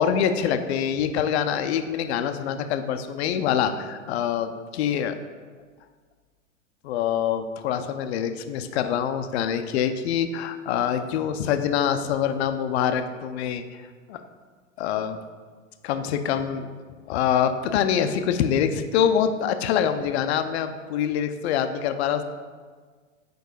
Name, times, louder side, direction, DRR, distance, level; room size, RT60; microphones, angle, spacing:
voice 1, 0.0-5.2 6.8-13.8 14.1-14.2 14.8-15.2 15.8-16.7 17.1-22.2, left 8 dB, 55° left, 9 dB, 0.6 m, -25 dB
4.6 x 4.6 x 4.6 m, 1.5 s
hypercardioid pair, 110°, 40 cm